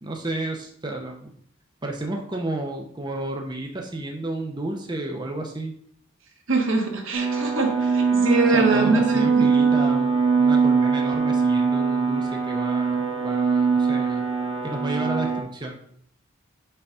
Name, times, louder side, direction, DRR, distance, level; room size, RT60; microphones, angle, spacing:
voice 1, 0.0-1.3 1.8-5.7 8.5-14.2 14.6-15.8, right 1 dB, 20° right, 2 dB, 0.8 m, -32 dB
voice 2, 6.5-9.5, right 3 dB, 70° right, 2 dB, 1.4 m, -23 dB
sound 1, 7.1-15.4, right 5 dB, 90° right, 1.6 m, -22 dB
5.6 x 4.0 x 5.5 m, 0.63 s
head